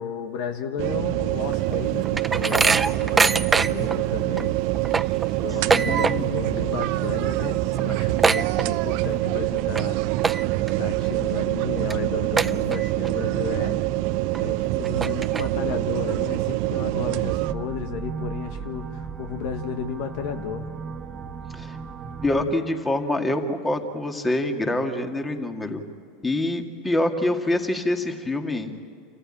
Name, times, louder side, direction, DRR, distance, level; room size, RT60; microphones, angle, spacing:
voice 1, 0.0-4.6 5.4-10.0 10.8-13.8 14.4-20.7, left 7 dB, 65° left, 7 dB, 1.3 m, -33 dB
sound 1, 0.8-17.5, right 17 dB, 60° right, 0.6 m, -25 dB
sound 2, 1.5-4.0 4.4-4.5 4.7-6.5 6.7-7.1 7.4-7.5 7.7-9.1 9.6-9.8 10.2-10.7 11.2-11.3 11.9-12.0 12.4-13.1 13.5-13.6 14.3-14.4 14.8-15.7, right 4 dB, 15° right, 0.5 m, -23 dB
voice 2, 5.7-6.4 21.5-21.8 22.2-25.8 26.2-28.7, left 1 dB, 15° left, 5 dB, 2.1 m, -25 dB
sound 3, 17.4-22.4, right 5 dB, 30° right, 1.3 m, -36 dB
27.5 x 14.5 x 8.9 m, 2.4 s
hypercardioid pair, 100°, 0 cm